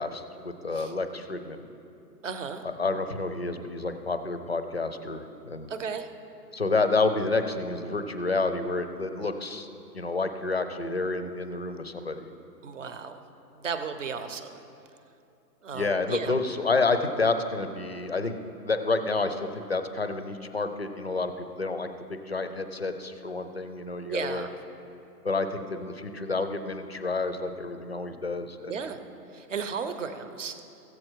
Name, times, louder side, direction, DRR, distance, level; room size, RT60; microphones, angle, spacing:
voice 1, 0.0-1.7 2.6-5.7 6.5-9.7 9.9-12.3 15.7-18.4 18.6-24.5 25.2-28.7, left 3 dB, 45° left, 8 dB, 0.4 m, -29 dB
voice 2, 2.2-2.6 5.7-6.1 12.6-13.2 13.6-14.6 15.6-16.3 24.0-24.5 28.7-29.0 29.3-30.5, right 6 dB, 50° right, 9 dB, 0.8 m, -34 dB
15.5 x 7.6 x 4.5 m, 2.8 s
hypercardioid pair, 180°, 49 cm